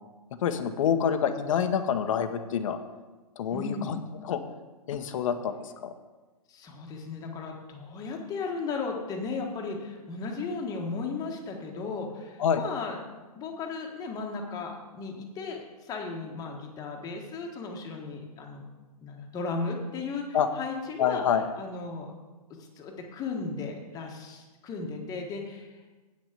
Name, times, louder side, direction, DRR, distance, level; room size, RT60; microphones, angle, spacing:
voice 1, 0.4-2.8 3.4-4.0 4.2-4.4 4.9-5.5 5.8-5.9 12.4-12.6 20.3-20.5 21.0-21.4, left 8 dB, 55° left, 8 dB, 1.0 m, -26 dB
voice 2, 3.5-3.9 6.5-13.0 13.3-18.6 19.0-21.2 21.6-22.1 22.8-25.7, left 4 dB, 20° left, 1 dB, 1.5 m, -35 dB
8.9 x 6.3 x 6.7 m, 1.2 s
hypercardioid pair, 140°, 20 cm